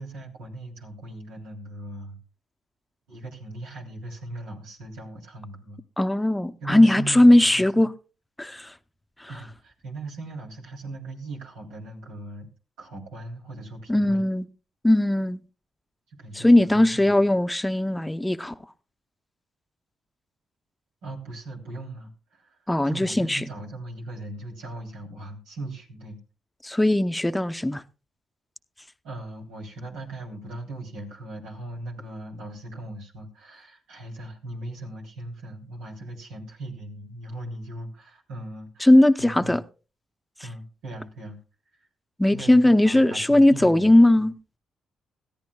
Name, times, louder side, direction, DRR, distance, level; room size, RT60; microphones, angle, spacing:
voice 1, 0.0-2.2 3.1-5.8 6.6-7.8 9.3-12.5 12.8-14.2 16.1-17.2 21.0-26.2 29.0-38.9 39.2-39.6 40.4-41.4 41.7-41.9 42.2-43.9, right 1 dB, 85° right, 3.3 m, -39 dB
voice 2, 6.0-7.9 8.4-8.7 9.2-9.3 13.9-14.4 14.8-15.4 16.3-18.5 22.7-23.4 26.6-27.8 38.8-39.6 42.2-44.3, left 1 dB, 10° left, 0.8 m, -19 dB
20.5 x 14.0 x 2.3 m
hypercardioid pair, 50°, 0 cm